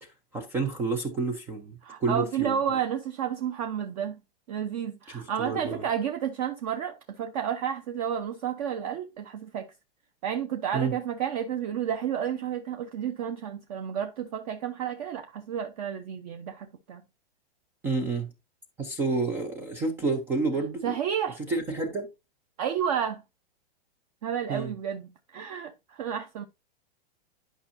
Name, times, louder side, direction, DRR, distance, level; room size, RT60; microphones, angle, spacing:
voice 1, 0.0-2.6 5.1-5.8 10.7-10.9 17.8-18.3 18.8-21.0 21.5-22.1 24.5-24.7, right 3 dB, 10° right, 0.4 m, -29 dB
voice 2, 1.8-4.2 4.5-9.7 10.2-17.0 20.8-21.4 22.6-23.2 24.2-26.5, right 8 dB, 40° right, 0.8 m, -31 dB
11.5 x 5.4 x 2.6 m
supercardioid pair, 165°, 30 cm